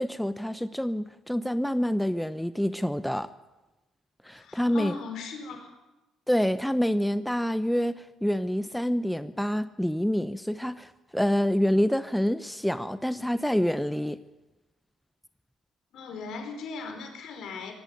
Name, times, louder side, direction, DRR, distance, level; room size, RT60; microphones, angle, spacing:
voice 1, 0.0-3.3 4.2-5.0 6.3-14.2, equal, 5° left, 13 dB, 0.9 m, -27 dB
voice 2, 4.3-5.7 15.9-17.7, left 4 dB, 65° left, 5 dB, 4.6 m, -38 dB
18.0 x 16.0 x 9.4 m, 1.1 s
hypercardioid pair, 55°, 0 cm